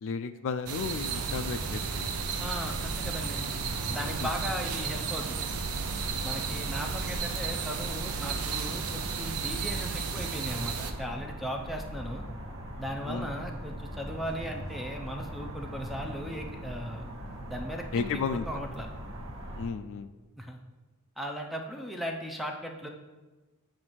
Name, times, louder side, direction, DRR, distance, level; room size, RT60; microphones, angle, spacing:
voice 1, 0.0-2.2 4.2-4.3 13.0-13.3 17.9-18.5 19.6-20.1, left 5 dB, 60° left, 11 dB, 0.3 m, -33 dB
sound 1, 0.7-10.9, right 6 dB, 75° right, 0.5 m, -34 dB
sound 2, 1.0-19.7, equal, 60° right, 1.0 m, -40 dB
voice 2, 2.4-3.4 3.9-5.5 6.2-12.2 12.8-17.1 17.5-18.2 18.5-18.9 20.4-20.6 21.2-22.9, equal, ahead, 2 dB, 0.5 m, -37 dB
7.6 x 2.6 x 5.7 m, 1.2 s
head